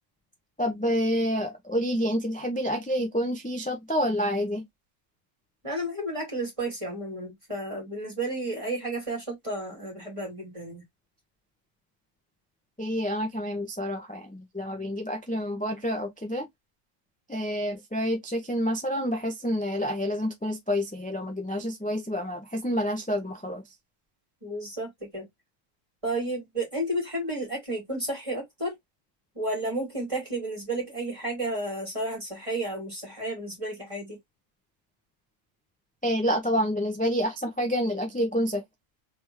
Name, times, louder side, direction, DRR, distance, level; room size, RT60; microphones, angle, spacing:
voice 1, 0.6-4.6 12.8-16.5 17.3-23.6 36.0-38.6, equal, 10° left, 0.5 m, -28 dB
voice 2, 5.6-10.8 24.4-25.3 26.0-28.7 29.4-34.2, right 1 dB, 25° right, 2.2 m, -32 dB
3.4 x 3.4 x 3.0 m
omnidirectional pair, 1.3 m